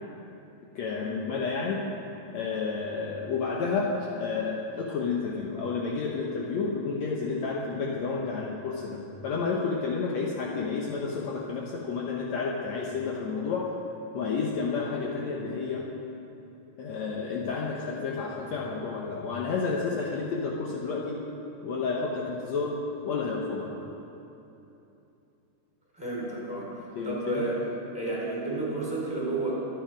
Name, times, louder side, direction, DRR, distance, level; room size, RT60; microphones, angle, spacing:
voice 1, 0.7-1.9 2.3-13.7 14.1-15.9 16.8-21.2 21.6-23.7 26.9-27.5, left 4 dB, 80° left, -2 dB, 1.5 m, -31 dB
voice 2, 26.0-27.6 27.9-29.5, right 2 dB, 5° right, -6 dB, 4.0 m, -31 dB
24.5 x 9.2 x 5.1 m, 2.9 s
omnidirectional pair, 4.7 m